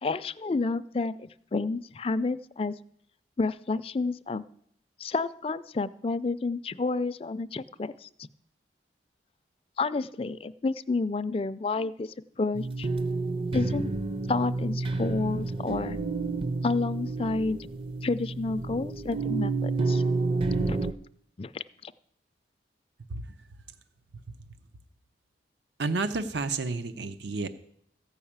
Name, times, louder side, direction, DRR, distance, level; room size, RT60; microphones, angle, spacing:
voice 1, 0.0-2.7 3.4-4.4 5.0-8.1 9.8-12.9 13.5-13.9 14.3-16.0 16.6-17.7 18.0-20.0 20.7-20.8 21.4-21.9, left 3 dB, 30° left, 13 dB, 0.4 m, -30 dB
sound 1, 12.5-20.9, right 3 dB, 30° right, 0.6 m, -30 dB
voice 2, 25.8-27.5, right 3 dB, 75° right, 11 dB, 0.7 m, -31 dB
14.5 x 5.6 x 8.7 m, 0.70 s
head